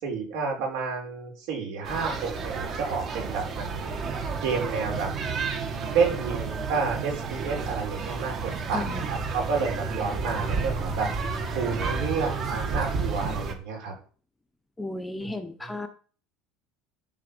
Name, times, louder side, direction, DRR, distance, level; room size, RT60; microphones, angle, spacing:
voice 1, 0.0-3.9 4.4-5.1 5.9-11.1 11.5-13.9 15.2-15.3 15.6-15.7, right 5 dB, 70° right, 0 dB, 4.8 m, -30 dB
sound 1, 1.8-13.5, right 4 dB, 35° right, 1.6 m, -31 dB
voice 2, 8.7-9.1 14.8-15.9, left 2 dB, 5° left, 7 dB, 1.0 m, -34 dB
11.0 x 4.1 x 7.0 m, 0.40 s
cardioid pair, 145°, 0 cm